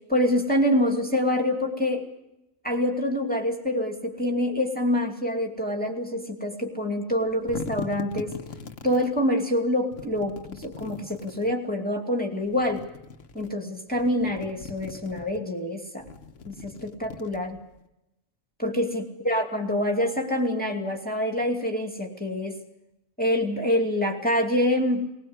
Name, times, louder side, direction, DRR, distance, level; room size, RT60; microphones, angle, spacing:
voice 1, 0.1-2.1 2.6-8.4 8.8-12.8 13.3-16.0 16.5-17.6 18.6-22.6 23.2-25.1, left 1 dB, 5° left, 1 dB, 2.5 m, -26 dB
sound 1, 7.1-9.1 9.9-11.5 12.4-13.5 13.9-15.4 16.0-17.8, left 5 dB, 60° left, 1.4 m, -40 dB
20.5 x 20.5 x 8.0 m, 0.87 s
omnidirectional pair, 1.5 m